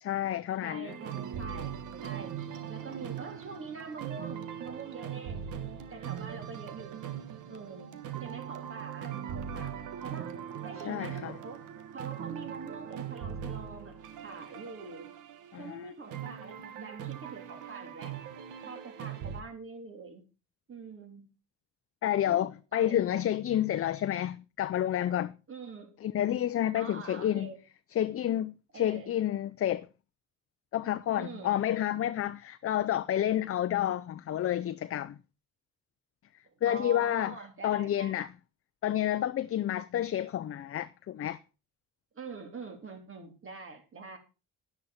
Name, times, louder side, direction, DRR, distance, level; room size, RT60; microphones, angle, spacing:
voice 1, 0.0-1.0 10.8-11.3 15.5-15.8 22.0-25.4 26.0-27.5 28.0-29.9 30.7-35.2 36.6-37.4 37.6-38.3 38.8-41.4, left 11 dB, 50° left, 0.6 m, -30 dB
voice 2, 0.6-5.4 5.9-7.0 7.5-9.7 10.0-10.3 10.6-15.1 15.6-18.2 18.6-20.2 20.7-21.3 22.2-23.2 25.5-25.9 26.7-27.6 28.7-29.1 31.1-31.6 36.4-38.2 42.1-44.2, right 4 dB, 45° right, 3.5 m, -45 dB
sound 1, 0.8-19.4, right 9 dB, 85° right, 1.5 m, -40 dB
10.5 x 10.5 x 4.2 m
cardioid pair, 90°, 30 cm